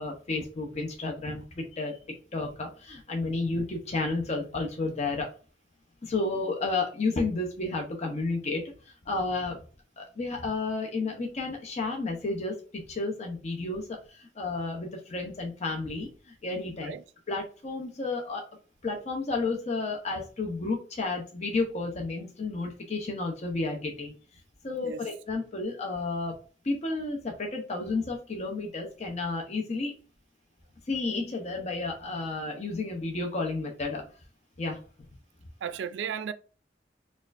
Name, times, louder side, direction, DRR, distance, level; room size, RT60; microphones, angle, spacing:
voice 1, 0.0-2.0 2.3-5.3 6.0-8.6 9.1-9.6 10.0-12.6 12.9-16.9 17.3-18.4 18.8-24.1 24.6-26.4 26.6-30.0 30.9-34.0 34.6-34.8, left 3 dB, 40° left, 0.6 m, -31 dB
voice 2, 35.6-36.3, right 7 dB, 85° right, 0.3 m, -34 dB
4.2 x 2.4 x 2.4 m
head